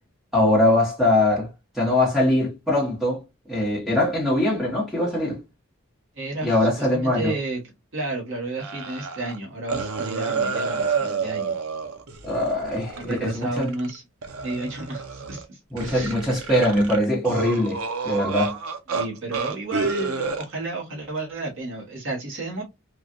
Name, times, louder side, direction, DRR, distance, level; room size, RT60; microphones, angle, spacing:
voice 1, 0.3-1.5 1.7-3.2 3.5-5.4 6.4-7.3 12.2-13.7 15.7-18.6, left 1 dB, ahead, 1.0 m, -22 dB
voice 2, 6.1-7.6 7.9-11.6 13.0-14.0 14.4-16.2 18.9-22.6, right 2 dB, 60° right, 1.3 m, -32 dB
sound 1, 8.6-9.4 9.7-13.9 14.2-15.5 15.8-19.1 19.3-20.4, right 5 dB, 85° right, 0.6 m, -29 dB
3.2 x 2.4 x 2.6 m
head